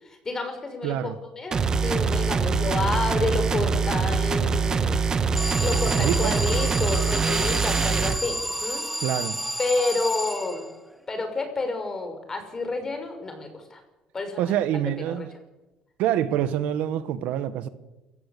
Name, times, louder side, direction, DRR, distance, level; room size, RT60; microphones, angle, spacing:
voice 1, 0.0-8.8 9.6-10.7 11.1-13.8 14.1-14.6 15.0-15.3, left 3 dB, 20° left, 5.9 m, -30 dB
voice 2, 0.8-1.2 5.8-6.4 9.0-9.4 14.4-15.3 16.0-17.7, right 11 dB, 75° right, 1.6 m, -26 dB
sound 1, 1.5-8.2, right 5 dB, 30° right, 1.6 m, -24 dB
Alarm, 5.4-10.9, right 1 dB, ahead, 1.8 m, -31 dB
28.0 x 15.5 x 8.7 m
cardioid pair, 125°, 2 cm